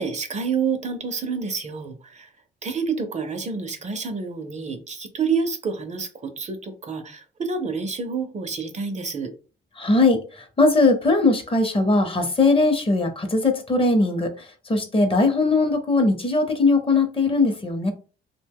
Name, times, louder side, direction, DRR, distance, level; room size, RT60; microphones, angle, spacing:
voice 1, 0.0-2.3 2.6-9.3, right 5 dB, 35° right, 8 dB, 0.5 m, -28 dB
voice 2, 9.8-17.9, left 3 dB, 25° left, 6 dB, 0.7 m, -20 dB
2.6 x 2.1 x 3.4 m, 0.36 s
cardioid pair, 90°, 20 cm